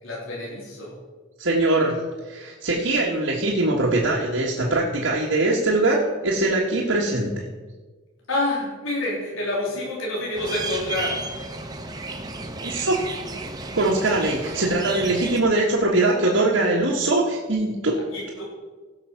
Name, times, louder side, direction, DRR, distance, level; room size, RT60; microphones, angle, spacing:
voice 1, 0.0-1.0 8.3-11.2 18.1-18.4, left 1 dB, 85° left, -3 dB, 3.2 m, -28 dB
voice 2, 1.4-2.0 2.3-7.4 12.6-13.0 13.7-17.9, right 2 dB, 80° right, -3 dB, 1.5 m, -22 dB
sound 1, 10.3-15.4, right 2 dB, 20° right, 1.0 m, -33 dB
16.0 x 6.4 x 5.8 m, 1.3 s
head